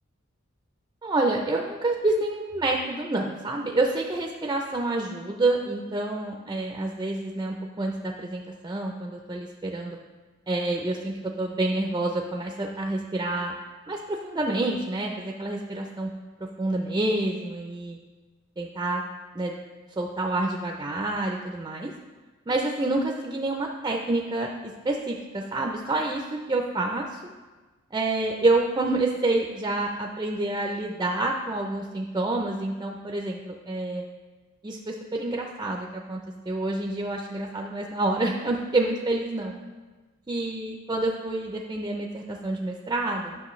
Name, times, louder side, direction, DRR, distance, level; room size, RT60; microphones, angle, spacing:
voice 1, 1.0-10.0 10.5-13.5 13.9-16.1 16.4-18.0 18.6-19.0 19.3-19.6 20.0-21.9 22.5-24.5 24.8-27.3 27.9-34.0 34.6-39.5 40.3-43.4, right 2 dB, 20° right, 1 dB, 0.4 m, -28 dB
9.9 x 5.9 x 3.1 m, 1.3 s
head